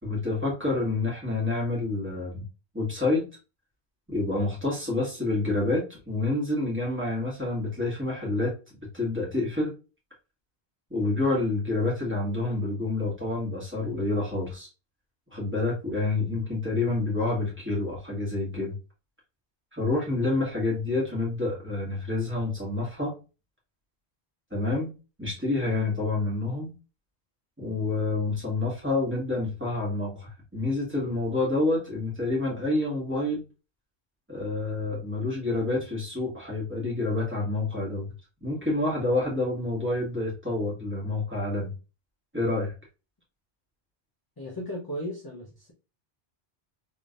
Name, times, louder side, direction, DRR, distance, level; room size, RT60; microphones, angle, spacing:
voice 1, 0.0-2.4 2.7-3.2 4.1-8.5 8.9-9.7 10.9-14.7 15.3-18.7 19.7-23.1 24.5-24.9 25.2-26.7 27.6-33.4 34.3-38.1 38.4-41.7 42.3-42.7, left 2 dB, 10° right, -5 dB, 1.7 m, -28 dB
voice 2, 44.4-45.7, equal, 25° left, -3 dB, 0.7 m, -36 dB
3.6 x 3.3 x 2.5 m, 0.31 s
omnidirectional pair, 1.1 m